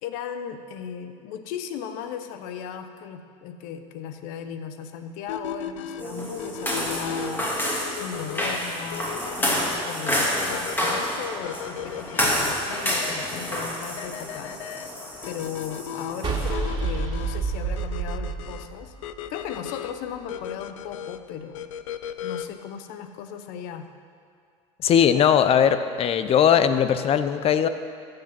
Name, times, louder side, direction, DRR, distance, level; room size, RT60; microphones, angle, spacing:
voice 1, 0.0-7.5 8.0-9.1 9.4-14.6 15.3-18.9 19.3-21.7 22.2-23.9, left 8 dB, 65° left, 8 dB, 1.0 m, -36 dB
sound 1, 5.3-22.7, left 9 dB, 85° left, 0.5 m, -37 dB
sound 2, 6.0-16.5, equal, 10° left, 2.5 m, -29 dB
sound 3, 16.2-19.5, right 4 dB, 30° right, 2.4 m, -28 dB
voice 2, 24.8-27.7, left 8 dB, 40° left, 11 dB, 0.7 m, -19 dB
14.5 x 6.7 x 6.0 m, 2.2 s
supercardioid pair, 100°, 16 cm